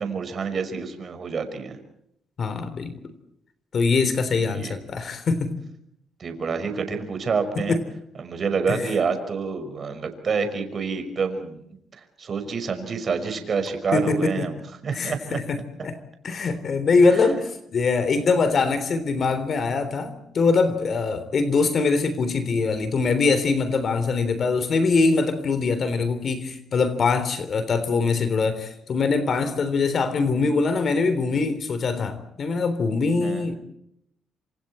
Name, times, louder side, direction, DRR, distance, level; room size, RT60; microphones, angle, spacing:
voice 1, 0.0-1.8 4.3-4.7 6.2-7.8 8.2-11.8 12.2-15.4 17.1-17.3 33.2-33.5, right 5 dB, 45° right, 8 dB, 5.6 m, -28 dB
voice 2, 2.4-2.9 3.7-5.5 7.7-7.8 8.7-8.8 13.9-14.5 14.9-16.0 16.2-33.5, left 4 dB, 50° left, 12 dB, 3.5 m, -23 dB
27.5 x 26.5 x 4.4 m, 0.75 s
cardioid pair, 90°, 0 cm